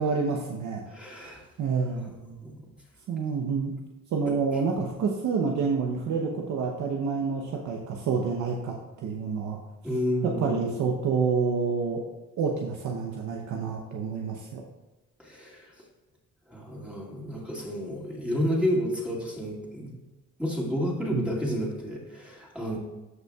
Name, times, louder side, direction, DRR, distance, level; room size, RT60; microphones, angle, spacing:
voice 1, 0.0-0.9 1.2-1.3 1.6-2.1 3.1-3.7 4.1-9.6 10.2-12.0 12.4-14.6 21.1-21.3, right 5 dB, 75° right, 0 dB, 0.9 m, -28 dB
voice 2, 0.9-1.4 2.0-2.6 9.8-10.6 15.2-15.7 16.5-19.9 20.4-22.8, equal, 5° right, -5 dB, 2.3 m, -30 dB
14.0 x 5.4 x 2.4 m, 1.1 s
cardioid pair, 90°, 30 cm